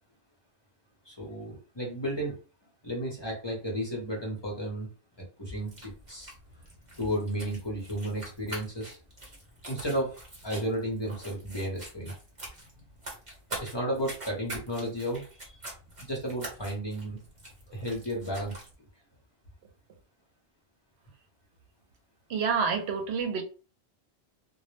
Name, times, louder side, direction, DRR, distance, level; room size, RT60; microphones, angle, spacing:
voice 1, 1.0-2.4 2.8-4.9 5.4-6.3 7.0-9.0 9.7-10.2 10.4-12.1 13.6-15.6 16.0-17.2 17.7-18.5, equal, 30° left, 0.7 m, -33 dB
sound 1, 5.6-18.7, right 1 dB, 30° right, 1.0 m, -45 dB
voice 2, 22.3-23.4, right 5 dB, 80° right, 0.9 m, -28 dB
2.2 x 2.0 x 3.1 m
omnidirectional pair, 1.1 m